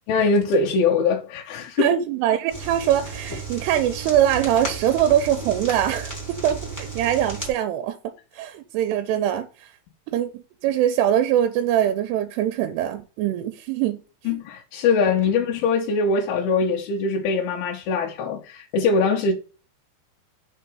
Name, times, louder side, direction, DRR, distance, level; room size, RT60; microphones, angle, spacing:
voice 1, 0.1-1.9 14.3-19.3, left 4 dB, 75° left, 2.6 m, -22 dB
voice 2, 1.8-8.0 8.4-9.7 10.1-10.3 10.6-14.0 14.2-14.4, right 11 dB, 85° right, 2.7 m, -22 dB
sound 1, 2.5-7.5, right 3 dB, 5° left, 1.7 m, -34 dB
5.8 x 4.4 x 4.6 m
omnidirectional pair, 4.8 m